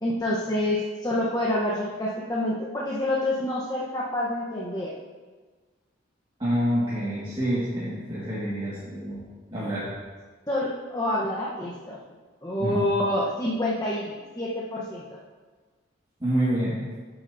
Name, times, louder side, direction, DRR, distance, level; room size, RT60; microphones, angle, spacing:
voice 1, 0.0-4.9 10.5-12.0 12.4-15.0, left 1 dB, 20° left, -5 dB, 0.9 m, -27 dB
voice 2, 6.4-9.9 12.6-12.8 16.2-17.0, equal, 25° right, -10 dB, 1.7 m, -27 dB
12.0 x 7.6 x 2.6 m, 1.4 s
head